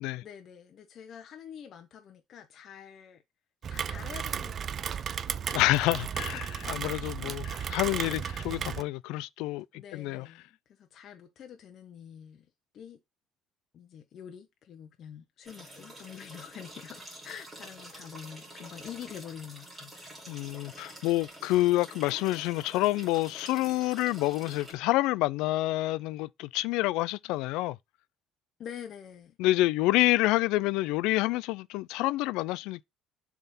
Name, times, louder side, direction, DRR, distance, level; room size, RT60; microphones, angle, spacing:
voice 1, 0.2-3.2 3.7-5.5 6.3-7.4 7.8-8.3 9.7-13.0 13.7-20.1 28.6-29.4, left 9 dB, 45° left, 0.8 m, -47 dB
Rain, 3.6-8.8, right 8 dB, 35° right, 0.4 m, -34 dB
voice 2, 5.5-9.7 9.9-10.3 20.3-27.8 29.4-32.8, left 18 dB, 85° left, 0.3 m, -28 dB
sound 1, 15.4-24.7, right 1 dB, 10° right, 2.7 m, -48 dB
7.0 x 3.6 x 4.1 m
cardioid pair, 140°, 0 cm